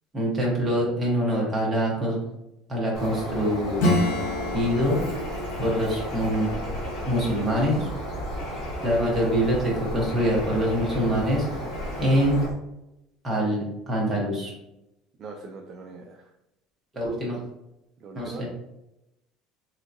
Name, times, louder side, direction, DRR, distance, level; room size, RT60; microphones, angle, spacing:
voice 1, 0.1-2.2 2.7-3.9 4.5-5.0 5.6-6.5 7.1-7.9 8.8-11.5 12.0-12.5 13.2-14.5 16.9-17.4 18.1-18.5, equal, 10° right, -4 dB, 1.0 m, -24 dB
Bird, 2.9-12.5, equal, 50° left, 1.4 m, -34 dB
Acoustic guitar / Strum, 3.8-8.1, left 1 dB, 65° left, 0.9 m, -29 dB
Bird 2, 4.4-12.5, right 1 dB, 60° right, 1.0 m, -40 dB
voice 2, 15.2-16.3 18.0-18.5, right 4 dB, 30° right, 2 dB, 0.3 m, -41 dB
3.4 x 2.8 x 2.6 m, 0.87 s
cardioid pair, 170°, 0 cm